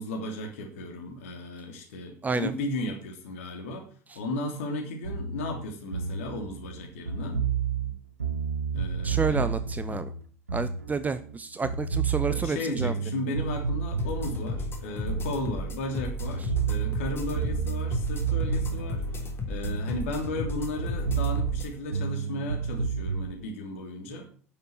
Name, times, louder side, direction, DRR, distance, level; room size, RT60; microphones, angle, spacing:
voice 1, 0.0-3.9 4.1-7.4 8.7-9.5 9.9-10.0 12.3-19.0 19.5-24.3, left 1 dB, 70° left, 3 dB, 3.2 m, -35 dB
sound 1, 5.0-11.3 11.6-15.9 16.2-20.5 20.8-23.3, right 6 dB, 85° right, 0.9 m, -31 dB
voice 2, 9.0-10.1 10.5-12.9, right 4 dB, 20° right, 13 dB, 0.8 m, -30 dB
sound 2, 14.0-21.7, left 2 dB, 30° left, 3.5 m, -34 dB
9.9 x 6.9 x 7.9 m, 0.43 s
figure-of-eight pair, 70°, 8 cm